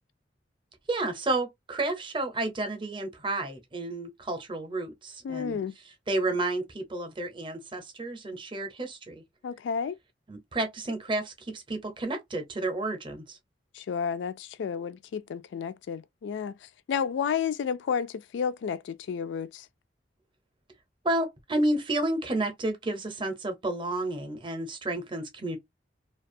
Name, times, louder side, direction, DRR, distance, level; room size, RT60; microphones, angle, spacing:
voice 1, 0.9-5.6 6.1-9.2 10.3-13.4 21.0-25.6, right 2 dB, 30° right, 0.6 m, -31 dB
voice 2, 5.2-5.7 9.4-10.0 13.7-19.7, left 7 dB, 80° left, 0.3 m, -31 dB
2.4 x 2.3 x 2.5 m
head